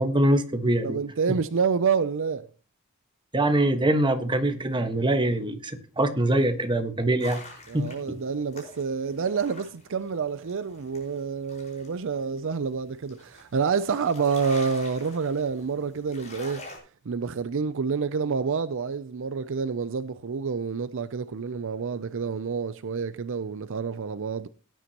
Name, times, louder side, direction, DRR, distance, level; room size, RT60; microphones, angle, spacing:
voice 1, 0.0-1.0 1.3-1.4 3.3-7.4 7.7-7.9, right 1 dB, 20° right, 1.5 m, -23 dB
voice 2, 0.8-2.5 7.7-16.7 17.1-24.5, right 5 dB, 60° right, 0.5 m, -28 dB
sound 1, 7.2-16.8, left 2 dB, 30° left, 5.2 m, -46 dB
17.5 x 9.9 x 3.0 m
head